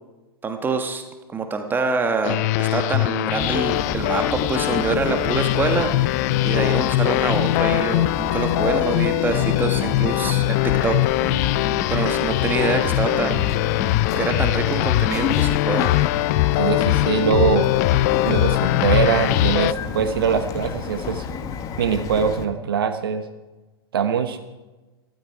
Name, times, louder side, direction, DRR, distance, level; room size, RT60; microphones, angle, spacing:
voice 1, 0.4-1.0 1.3-6.1 6.4-11.0 11.3-11.4 11.9-13.6 14.2-15.9, right 4 dB, 15° right, 6 dB, 1.3 m, -25 dB
sound 1, 2.2-19.7, left 16 dB, 40° left, 0.4 m, -21 dB
Bird vocalization bird call bird song, 3.4-22.5, left 6 dB, 25° left, 1.2 m, -30 dB
voice 2, 16.6-17.7 18.2-21.2 21.8-23.2 23.9-24.4, right 7 dB, 65° right, 7 dB, 1.2 m, -22 dB
18.0 x 13.0 x 4.7 m, 1.1 s
figure-of-eight pair, 110°, 13 cm